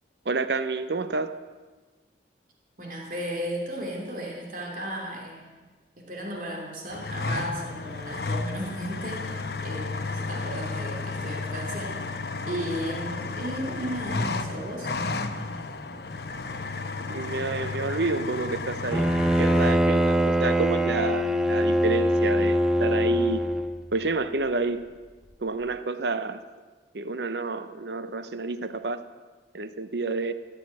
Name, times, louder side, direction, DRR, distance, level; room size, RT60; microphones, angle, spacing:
voice 1, 0.2-1.4 17.1-19.1 19.4-23.5 23.9-24.9 25.4-26.4 26.9-29.0 29.5-30.3, right 3 dB, 65° right, 12 dB, 0.8 m, -29 dB
voice 2, 2.8-5.6 6.0-12.0 12.5-14.9, equal, 45° right, 0 dB, 2.9 m, -35 dB
sound 1, 6.9-19.7, left 3 dB, 60° left, 1.0 m, -33 dB
Bowed string instrument, 18.9-23.8, equal, 5° right, 0.7 m, -23 dB
15.0 x 9.9 x 9.5 m, 1.3 s
head